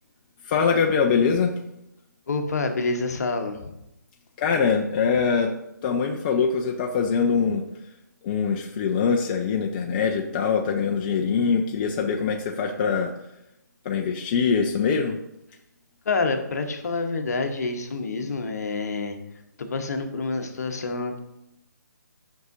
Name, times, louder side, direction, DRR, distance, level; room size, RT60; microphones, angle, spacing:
voice 1, 0.5-1.6 4.4-5.5 5.8-7.6 8.2-13.1 13.8-15.2, left 6 dB, 25° left, 1 dB, 0.5 m, -23 dB
voice 2, 2.3-3.7 16.0-19.2 19.6-21.2, left 3 dB, 55° left, 6 dB, 1.0 m, -27 dB
9.3 x 5.6 x 2.6 m, 0.86 s
figure-of-eight pair, 145°, 10 cm